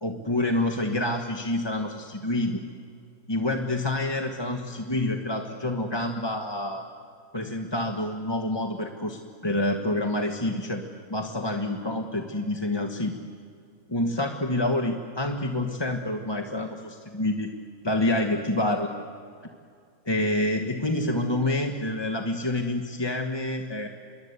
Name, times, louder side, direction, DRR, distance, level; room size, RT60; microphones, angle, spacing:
voice 1, 0.0-2.6 3.3-6.8 7.3-10.8 11.1-13.1 13.9-17.5 17.8-18.9 20.1-23.9, left 1 dB, 20° left, 3 dB, 1.2 m, -27 dB
28.0 x 22.5 x 8.2 m, 2.3 s
omnidirectional pair, 1.5 m